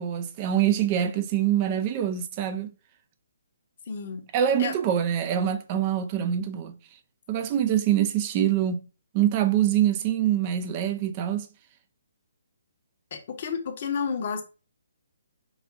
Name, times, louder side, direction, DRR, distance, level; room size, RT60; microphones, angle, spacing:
voice 1, 0.0-2.7 4.3-6.8 7.3-8.8 9.1-11.5, right 10 dB, 30° right, 0.4 m, -24 dB
voice 2, 3.9-4.2 4.6-4.7 13.1-14.4, left 6 dB, 45° left, 0.8 m, -31 dB
4.8 x 2.4 x 2.5 m
figure-of-eight pair, 140°, 0 cm